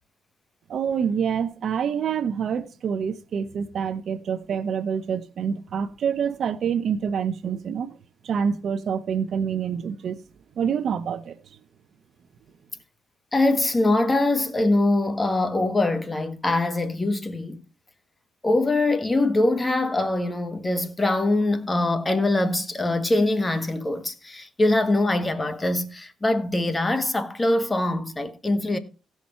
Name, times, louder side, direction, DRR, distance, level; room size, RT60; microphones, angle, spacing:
voice 1, 0.7-7.9 8.2-10.2 10.6-11.4, right 7 dB, 60° right, 0.8 m, -26 dB
voice 2, 13.3-17.6 18.4-28.8, left 2 dB, 20° left, 1.5 m, -23 dB
16.5 x 6.0 x 4.4 m
cardioid pair, 90°, 0 cm